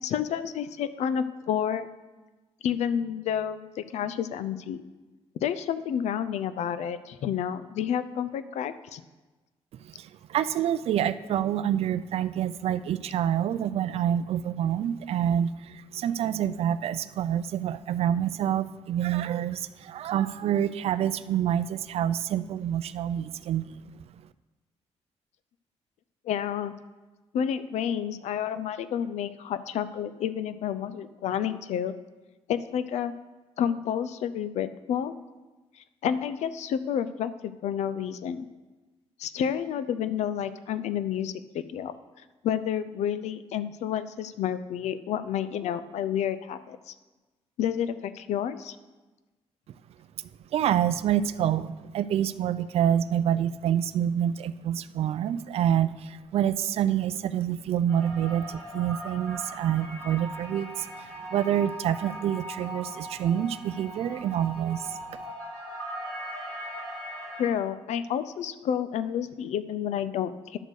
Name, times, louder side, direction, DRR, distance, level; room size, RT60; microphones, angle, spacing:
voice 1, 0.0-1.9 2.6-4.8 5.4-9.0 26.3-26.7 27.3-31.9 32.5-33.1 33.6-35.1 36.0-38.4 39.2-41.9 42.4-46.8 47.6-48.8 67.4-70.6, left 9 dB, 80° left, 13 dB, 0.5 m, -30 dB
voice 2, 10.3-23.8 50.5-60.9 61.3-65.0, right 10 dB, 60° right, 14 dB, 0.4 m, -27 dB
sound 1, 57.9-67.5, right 1 dB, 20° left, 3.6 m, -39 dB
10.5 x 6.7 x 4.7 m, 1.2 s
cardioid pair, 145°, 11 cm